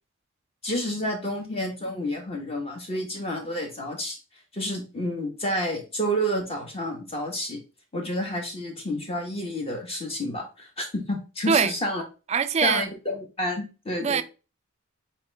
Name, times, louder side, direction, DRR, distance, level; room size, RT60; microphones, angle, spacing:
voice 1, 0.6-4.2 4.5-7.6 7.9-12.0 12.6-14.2, equal, 30° left, 1.4 m, -30 dB
voice 2, 12.3-12.9 14.0-14.2, right 6 dB, 30° right, 0.3 m, -22 dB
4.4 x 3.5 x 3.3 m
head